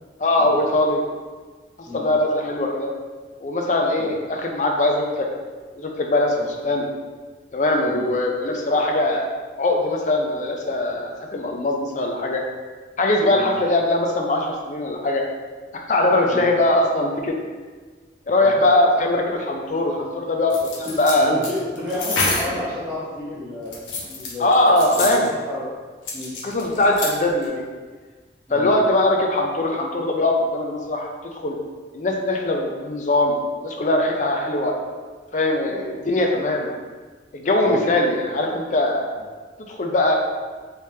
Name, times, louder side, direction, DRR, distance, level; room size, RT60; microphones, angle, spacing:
voice 1, 0.2-1.0 1.9-2.9 3.4-5.3 5.8-6.9 7.5-9.3 9.6-12.4 13.0-15.2 15.7-17.3 18.3-21.3 24.4-25.3 26.4-27.6 28.5-31.1 31.4-31.6 31.9-34.7 35.3-36.7 37.3-39.1 39.7-40.2, left 1 dB, 40° left, 1 dB, 0.4 m, -21 dB
sound 1, 20.5-22.6 23.6-25.3 26.1-27.1 27.4-27.5, left 3 dB, 80° left, 0.7 m, -27 dB
voice 2, 20.8-24.5 24.9-25.7 26.1-26.4 28.5-28.7 37.6-37.8, left 2 dB, 10° right, -15 dB, 0.9 m, -31 dB
3.3 x 3.2 x 2.7 m, 1.4 s
head